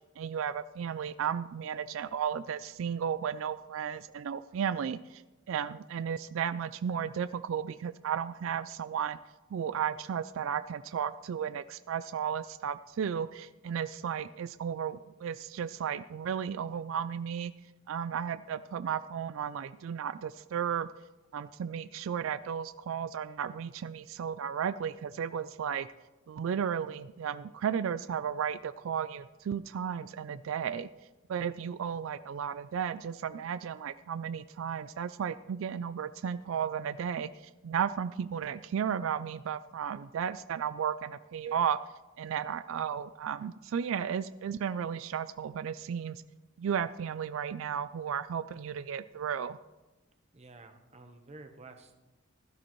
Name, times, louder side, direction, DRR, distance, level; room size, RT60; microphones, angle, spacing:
voice 1, 0.2-5.2 5.5-9.2 9.5-17.5 17.9-20.9 21.3-25.9 26.3-30.9 31.3-41.8 42.2-46.2 46.6-49.6, right 8 dB, 80° right, 14 dB, 0.3 m, -34 dB
voice 2, 50.3-51.9, right 2 dB, 30° right, 6 dB, 1.0 m, -51 dB
16.0 x 12.5 x 3.1 m, 1.1 s
head